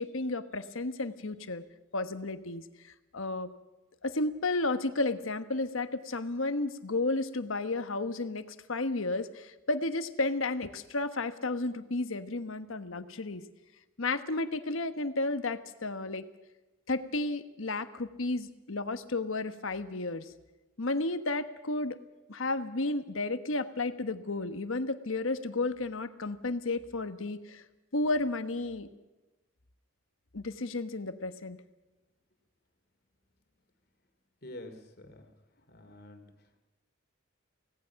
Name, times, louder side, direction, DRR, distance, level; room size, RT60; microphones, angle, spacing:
voice 1, 0.0-1.6 1.9-3.5 4.0-13.4 14.0-16.3 16.9-20.3 20.8-22.0 22.3-27.6 27.9-28.9 30.3-31.6, left 2 dB, 75° left, 10 dB, 1.2 m, -32 dB
voice 2, 34.4-35.3 35.7-36.2, left 1 dB, 50° left, 5 dB, 2.7 m, -47 dB
25.5 x 18.0 x 5.9 m, 1.1 s
head